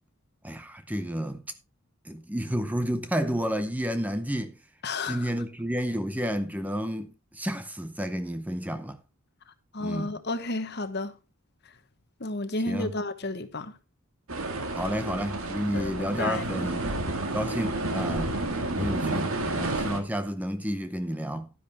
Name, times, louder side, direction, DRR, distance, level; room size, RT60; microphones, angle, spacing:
voice 1, 0.4-1.4 2.0-4.6 5.1-9.0 9.8-10.1 12.7-12.9 14.7-16.9 17.3-18.4 18.8-21.5, equal, 5° right, 0.7 m, -31 dB
voice 2, 4.8-5.3 9.7-11.2 11.6-11.7 12.2-13.8 15.7-16.7, left 2 dB, 50° left, 1.1 m, -32 dB
sound 1, 14.3-20.0, right 2 dB, 80° right, 1.9 m, -30 dB
11.0 x 10.0 x 3.4 m
head